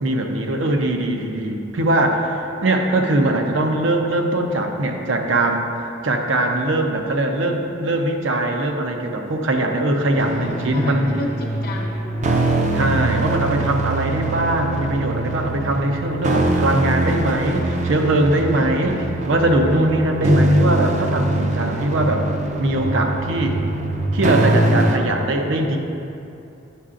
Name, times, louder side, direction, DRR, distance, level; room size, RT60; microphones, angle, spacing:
voice 1, 0.0-5.7 6.0-11.1 12.7-22.2 22.6-23.6 24.1-25.8, right 1 dB, 85° right, 3 dB, 0.6 m, -21 dB
sound 1, 10.2-25.0, right 2 dB, 40° right, 0.4 m, -22 dB
voice 2, 10.3-12.3 18.6-19.2, left 1 dB, 55° left, -1 dB, 0.9 m, -33 dB
8.3 x 6.5 x 2.5 m, 2.7 s
head